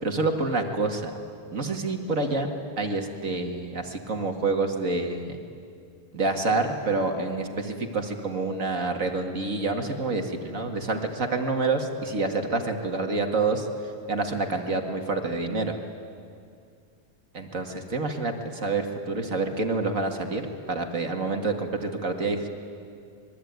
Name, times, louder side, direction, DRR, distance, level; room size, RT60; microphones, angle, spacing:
voice 1, 0.0-1.1 1.5-2.5 2.8-5.4 6.1-13.7 14.1-15.7 17.3-20.4 20.7-22.5, right 3 dB, 30° right, 4 dB, 1.9 m, -27 dB
26.0 x 22.5 x 9.5 m, 2.4 s
omnidirectional pair, 3.3 m